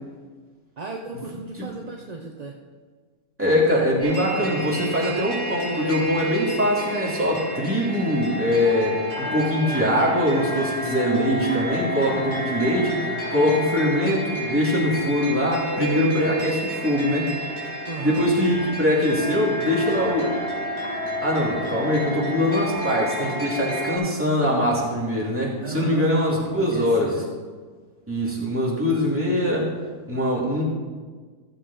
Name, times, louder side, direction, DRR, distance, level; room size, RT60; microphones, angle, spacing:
voice 1, 0.8-2.6 4.6-5.2 17.9-18.3 25.6-26.1 26.6-27.3, right 4 dB, 40° right, 0 dB, 0.6 m, -35 dB
voice 2, 3.4-13.0 13.3-17.3 18.0-20.3 21.2-27.1 28.1-29.7 30.1-30.6, equal, 10° right, -6 dB, 2.6 m, -22 dB
sound 1, 4.0-24.0, equal, 45° left, 3.1 m, -30 dB
15.0 x 7.5 x 4.1 m, 1.5 s
omnidirectional pair, 1.6 m